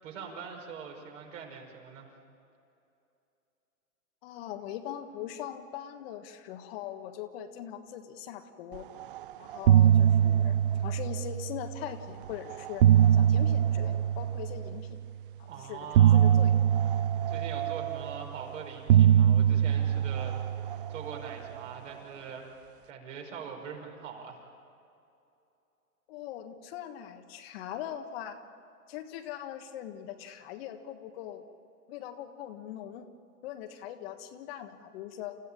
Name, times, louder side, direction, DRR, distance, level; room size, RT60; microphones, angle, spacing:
voice 1, 0.0-2.1 15.5-16.2 17.3-20.4 20.9-22.5 22.9-24.4, right 6 dB, 55° right, 2 dB, 5.5 m, -42 dB
voice 2, 4.2-8.9 9.4-12.8 13.1-15.0 15.4-16.5 26.1-28.4 28.9-31.4 31.9-33.1 33.4-35.4, left 10 dB, 40° left, 6 dB, 1.5 m, -41 dB
sound 1, 9.0-9.2 9.5-11.8 12.5-14.9 15.9-18.4 18.9-21.5, right 10 dB, 40° right, 0.5 m, -23 dB
29.0 x 15.5 x 8.9 m, 2.7 s
hypercardioid pair, 130°, 45 cm